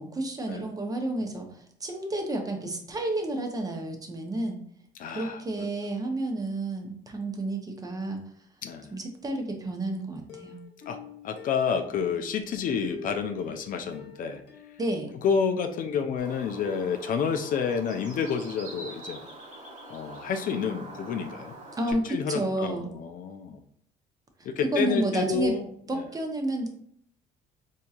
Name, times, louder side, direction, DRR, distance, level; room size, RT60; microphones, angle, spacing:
voice 1, 0.0-4.6 5.1-8.2 8.9-10.6 14.8-15.1 21.8-22.9 24.4-25.5 25.9-26.7, right 1 dB, 20° right, 3 dB, 0.7 m, -30 dB
voice 2, 5.0-5.7 8.6-8.9 10.9-14.4 15.1-19.2 19.9-21.5 21.9-23.6 24.4-25.7 25.9-26.1, left 6 dB, 55° left, 6 dB, 0.4 m, -29 dB
Plucked string instrument, 10.3-12.3 12.9-15.7 16.0-16.1 16.5-16.6, left 6 dB, 70° left, 1.0 m, -47 dB
Bird, 16.2-21.9, right 2 dB, 50° right, 1.3 m, -44 dB
4.4 x 2.8 x 2.4 m, 0.63 s
cardioid pair, 110°, 17 cm